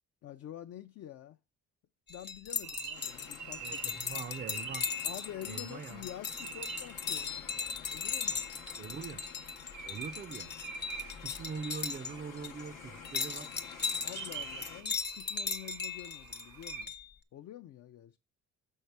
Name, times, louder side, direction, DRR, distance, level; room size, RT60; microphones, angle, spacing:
voice 1, 0.2-1.4 2.1-4.1 5.0-8.4 14.0-16.9 17.3-18.2, left 12 dB, 55° left, 0.4 m, -47 dB
sound 1, 2.1-12.1 12.4-12.7 13.0-17.1, left 5 dB, 35° left, 0.8 m, -38 dB
sound 2, 2.6-16.9, right 8 dB, 75° right, 0.7 m, -48 dB
sound 3, 2.9-14.8, left 9 dB, 85° left, 0.8 m, -51 dB
voice 2, 3.6-4.9 5.5-6.1 8.8-9.3 9.8-10.5 11.2-13.5, right 6 dB, 35° right, 0.4 m, -42 dB
6.4 x 5.5 x 4.6 m
cardioid pair, 90°, 30 cm